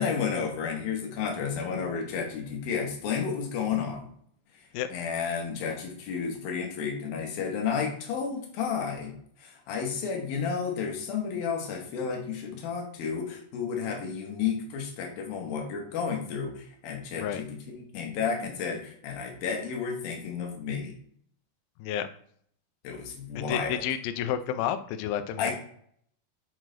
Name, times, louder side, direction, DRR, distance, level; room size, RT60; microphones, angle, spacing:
voice 1, 0.0-4.1 4.9-9.1 9.4-21.0 22.8-23.8 25.4-25.5, left 6 dB, 70° left, 2 dB, 2.6 m, -32 dB
voice 2, 23.4-25.5, left 10 dB, 85° left, 9 dB, 2.2 m, -30 dB
6.2 x 6.1 x 3.9 m, 0.64 s
omnidirectional pair, 5.0 m